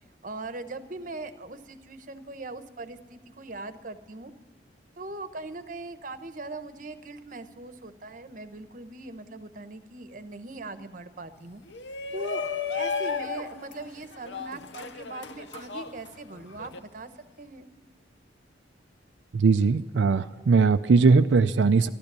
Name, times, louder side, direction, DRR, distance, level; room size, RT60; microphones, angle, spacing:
voice 1, 0.2-4.3 5.0-11.6 12.1-12.4 12.7-17.1 17.4-17.7, right 2 dB, 45° right, 10 dB, 0.9 m, -40 dB
Shout, 11.7-16.8, left 5 dB, 75° left, 0.8 m, -34 dB
voice 2, 19.3-21.9, right 4 dB, 90° right, 8 dB, 0.5 m, -20 dB
15.0 x 12.0 x 6.8 m, 1.4 s
head